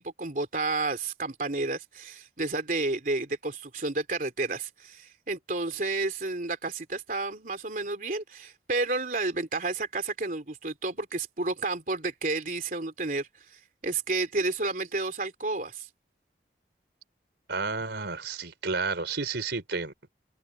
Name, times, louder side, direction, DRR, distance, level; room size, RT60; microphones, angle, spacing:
voice 1, 0.0-15.9, right 3 dB, 50° right, 3.4 m, -31 dB
voice 2, 17.5-20.1, right 4 dB, 80° right, 3.9 m, -31 dB
head